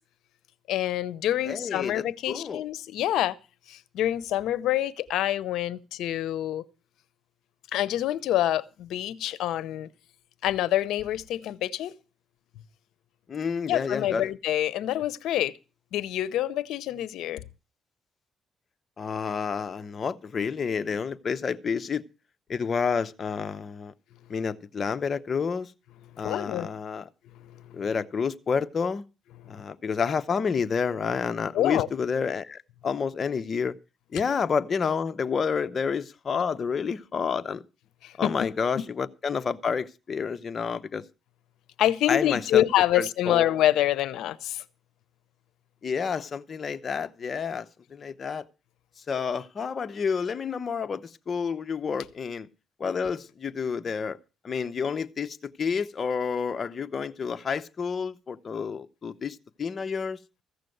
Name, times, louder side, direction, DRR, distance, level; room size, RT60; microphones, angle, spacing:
voice 1, 0.7-3.4 3.7-6.6 7.7-9.9 10.4-11.9 13.7-15.5 15.9-17.4 26.2-26.7 27.4-27.8 29.4-29.6 31.5-31.9 38.0-38.5 38.8-38.9 41.8-44.6, left 12 dB, 85° left, 0.7 m, -26 dB
voice 2, 1.4-2.6 13.3-14.3 19.0-22.0 22.5-23.9 24.3-25.7 26.2-27.1 27.7-29.0 29.5-33.7 34.1-37.6 38.2-41.0 42.1-42.6 42.9-43.4 45.8-48.5 49.1-52.5 52.8-54.2 54.4-60.2, left 6 dB, 45° left, 0.8 m, -29 dB
15.0 x 6.6 x 7.8 m
cardioid pair, 90°, 0 cm